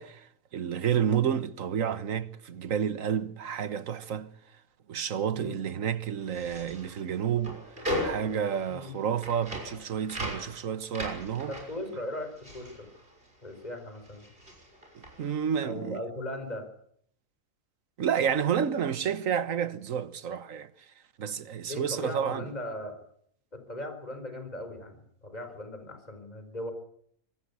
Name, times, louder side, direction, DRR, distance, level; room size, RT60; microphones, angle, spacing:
voice 1, 0.0-4.3 4.9-7.6 8.0-11.5 14.9-16.0 18.0-20.7 21.2-22.5, right 8 dB, 60° right, 1.5 m, -30 dB
sound 1, 6.2-13.7 14.0-15.4, equal, 35° right, 6.8 m, -38 dB
voice 2, 11.5-12.9 13.4-14.3 15.6-16.7 21.6-23.0 23.5-26.7, left 1 dB, 25° left, 5.1 m, -38 dB
25.5 x 18.0 x 8.5 m
omnidirectional pair, 1.7 m